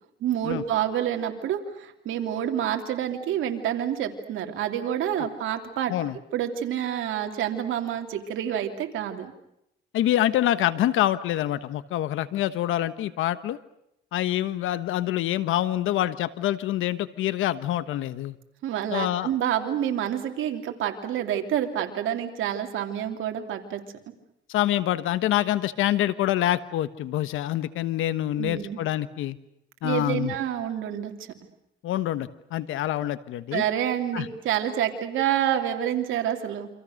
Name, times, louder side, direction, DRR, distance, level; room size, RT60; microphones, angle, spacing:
voice 1, 0.2-5.9 6.3-9.3 18.6-23.8 28.4-28.8 29.8-31.1 33.5-36.7, right 10 dB, 80° right, 4 dB, 3.2 m, -28 dB
voice 2, 9.9-13.6 14.1-18.4 18.9-19.3 24.5-29.4 29.8-30.3 31.8-33.6 34.1-34.3, left 13 dB, 85° left, 14 dB, 1.3 m, -26 dB
28.5 x 26.0 x 6.6 m, 0.79 s
cardioid pair, 90°, 20 cm